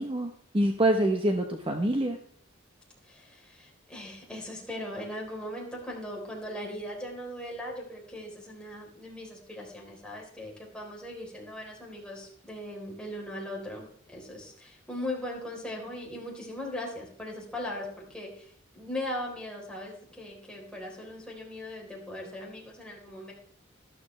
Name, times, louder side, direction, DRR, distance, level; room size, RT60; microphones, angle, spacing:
voice 1, 0.0-2.2, right 1 dB, 25° right, 4 dB, 0.9 m, -26 dB
voice 2, 3.0-18.5 18.7-23.3, left 1 dB, 5° left, -2 dB, 3.7 m, -39 dB
13.0 x 12.5 x 3.2 m, 0.63 s
head